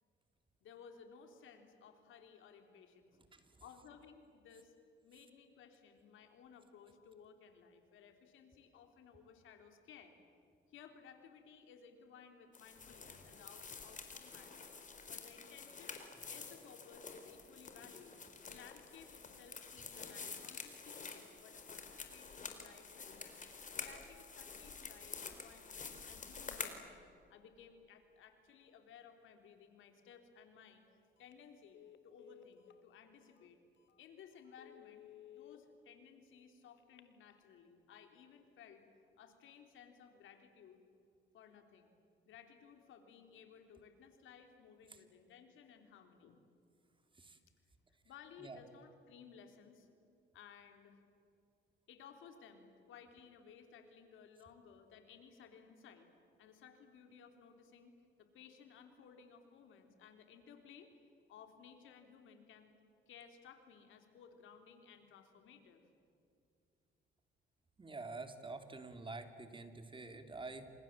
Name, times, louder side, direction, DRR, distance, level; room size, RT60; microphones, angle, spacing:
voice 1, 0.6-3.2 3.6-4.8 5.0-10.2 10.7-14.7 15.1-16.0 16.3-18.2 18.5-23.3 23.7-27.0 27.3-30.8 31.2-31.8 32.0-33.6 34.0-38.8 39.2-40.8 41.3-41.9 42.3-46.5 48.0-49.9 50.3-51.0 51.9-56.1 56.4-60.9 61.3-62.7 63.1-65.9, left 7 dB, 80° left, 5 dB, 3.6 m, -59 dB
voice 2, 3.3-3.6 44.9-45.0 47.1-47.4 48.4-48.6 67.8-70.7, right 3 dB, 25° right, 7 dB, 3.0 m, -48 dB
sound 1, 12.5-26.7, left 5 dB, 40° left, 4.1 m, -49 dB
Telephone, 31.2-31.4 31.7-32.8 33.4-33.5 33.9-34.0 34.4-35.6 36.8-37.4, left 12 dB, 65° left, 1.9 m, -57 dB
28.5 x 27.0 x 7.5 m, 2.5 s
cardioid pair, 90°, 20 cm